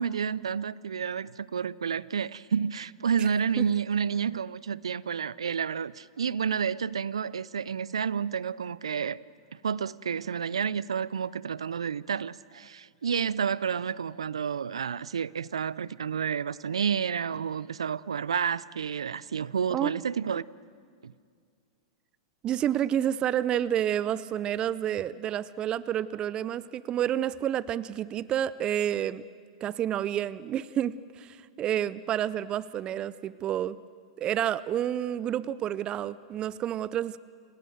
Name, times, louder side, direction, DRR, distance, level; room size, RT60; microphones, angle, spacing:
voice 1, 0.0-9.2 9.5-20.4 21.0-21.1, right 7 dB, 80° right, 0.5 m, -30 dB
voice 2, 22.4-29.2 29.6-33.8 34.2-37.2, right 10 dB, 30° right, 0.6 m, -29 dB
28.0 x 18.0 x 7.9 m
hypercardioid pair, 105°, 3 cm